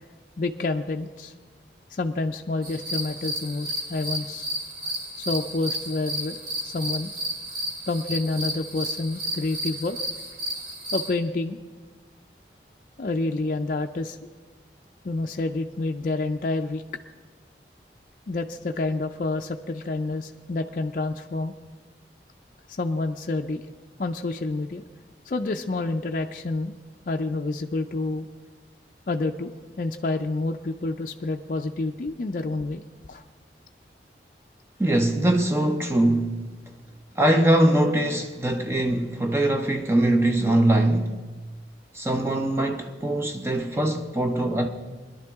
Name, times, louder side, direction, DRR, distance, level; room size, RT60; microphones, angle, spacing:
voice 1, 0.4-1.3 2.0-4.5 5.2-6.4 6.6-7.1 7.9-10.0 10.9-11.6 13.0-14.2 15.0-16.8 18.3-21.5 22.7-23.6 24.0-24.8 25.3-26.8 27.1-28.3 29.1-32.8 33.1-33.2, left 2 dB, 50° left, 0.4 m, -28 dB
sound 1, 2.6-11.1, right 1 dB, 55° right, 2.3 m, -32 dB
voice 2, 34.8-36.4 37.2-41.1 41.9-44.7, right 1 dB, 15° right, 0.6 m, -22 dB
21.0 x 11.0 x 3.5 m
head